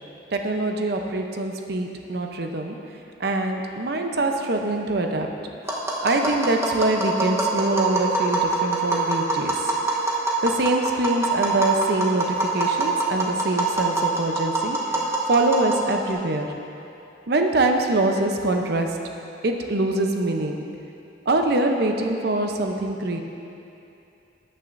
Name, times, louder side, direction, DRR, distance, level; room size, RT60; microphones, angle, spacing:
voice 1, 0.3-2.8 3.2-5.3 6.0-9.5 10.4-15.0 15.3-16.5 17.3-18.9 19.4-20.6 21.3-23.2, right 2 dB, 60° right, 3 dB, 0.7 m, -24 dB
Tap, 5.7-16.1, right 3 dB, 15° right, 1.0 m, -25 dB
13.0 x 8.9 x 2.6 m, 2.7 s
head